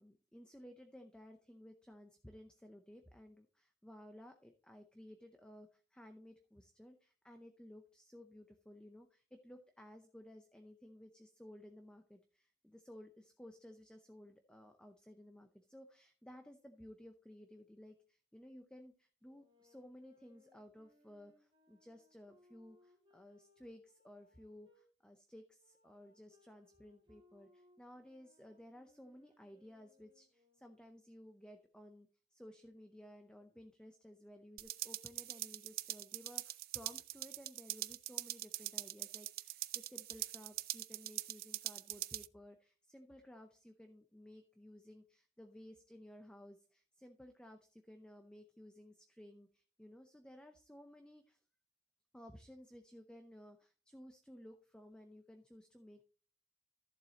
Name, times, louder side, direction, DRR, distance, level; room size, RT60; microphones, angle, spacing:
voice 1, 0.0-51.4 52.1-56.0, left 1 dB, 5° left, 5 dB, 0.6 m, -57 dB
sound 1, 19.2-24.9 25.6-31.1, left 2 dB, 30° right, 2.8 m, -71 dB
fast hat loop, 34.6-42.3, right 15 dB, 55° right, 0.4 m, -43 dB
14.0 x 7.5 x 2.9 m, 0.41 s
head